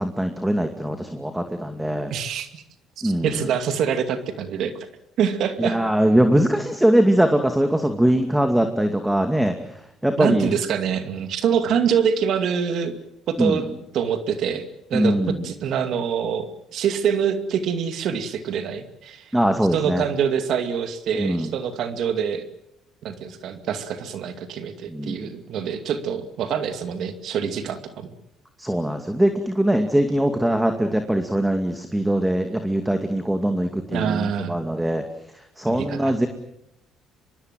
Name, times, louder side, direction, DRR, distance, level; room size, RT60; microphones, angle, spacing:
voice 1, 0.0-2.1 3.0-3.4 5.6-9.6 10.0-10.5 13.4-13.6 14.9-15.4 19.3-20.0 21.2-21.5 24.9-25.2 28.6-35.0 35.6-36.3, right 1 dB, 5° right, 6 dB, 2.4 m, -21 dB
voice 2, 2.1-2.6 3.0-4.7 5.2-5.8 10.2-12.9 13.3-13.7 13.9-19.3 19.7-22.4 23.0-28.1 33.9-34.5 35.7-36.1, right 7 dB, 65° right, 8 dB, 2.4 m, -25 dB
24.5 x 22.5 x 7.7 m, 0.82 s
supercardioid pair, 85°, 0 cm